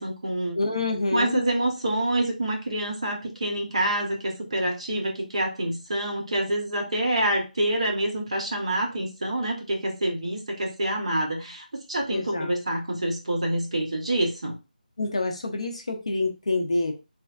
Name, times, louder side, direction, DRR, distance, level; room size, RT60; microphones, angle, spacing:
voice 1, 0.0-0.6 1.1-14.6, right 1 dB, 40° right, 1 dB, 0.8 m, -27 dB
voice 2, 0.5-1.4 12.1-12.5 15.0-16.9, left 2 dB, 40° left, 4 dB, 0.5 m, -27 dB
3.1 x 2.3 x 2.4 m, 0.29 s
figure-of-eight pair, 180°, 5 cm